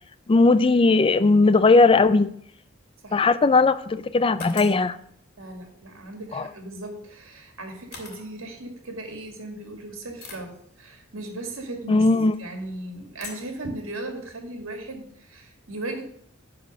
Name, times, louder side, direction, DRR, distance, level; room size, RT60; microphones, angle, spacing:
voice 1, 0.3-2.4 3.1-5.0 6.3-6.5 11.9-12.3, left 3 dB, 25° left, 13 dB, 0.4 m, -18 dB
sound 1, 3.5-3.6 4.4-4.9 6.9-7.0 7.9-8.3 9.2-9.3 10.2-10.5 12.1-12.4 13.2-13.6, left 4 dB, 50° left, 2.1 m, -42 dB
voice 2, 5.4-12.0 12.4-16.0, right 2 dB, 70° right, 3 dB, 2.1 m, -37 dB
10.0 x 4.3 x 6.3 m, 0.66 s
head